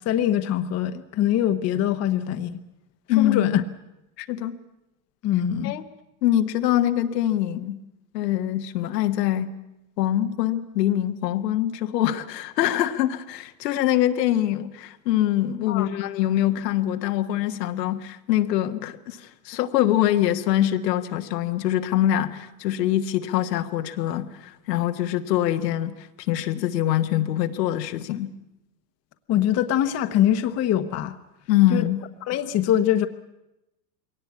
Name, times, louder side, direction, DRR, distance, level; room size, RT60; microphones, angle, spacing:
voice 1, 0.1-2.5 3.2-3.6 5.2-5.7 15.7-15.9 29.3-31.1 31.7-31.8 32.2-33.1, left 11 dB, 30° left, 9 dB, 1.1 m, -23 dB
voice 2, 3.1-3.5 4.2-4.6 5.6-5.8 6.2-7.8 8.1-9.5 10.0-19.2 19.4-25.9 26.3-28.3 31.5-32.0, left 12 dB, 75° left, 7 dB, 1.5 m, -24 dB
21.5 x 18.5 x 8.4 m, 0.92 s
supercardioid pair, 130°, 49 cm